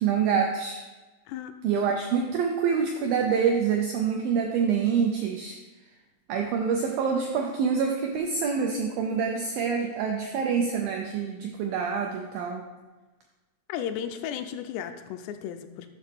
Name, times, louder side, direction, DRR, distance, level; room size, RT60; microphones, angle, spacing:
voice 1, 0.0-0.8 1.6-5.6 6.3-12.6, right 6 dB, 85° right, 1 dB, 2.0 m, -26 dB
voice 2, 13.7-15.9, left 9 dB, 85° left, 7 dB, 2.6 m, -34 dB
9.1 x 6.2 x 3.4 m, 1.2 s
omnidirectional pair, 4.9 m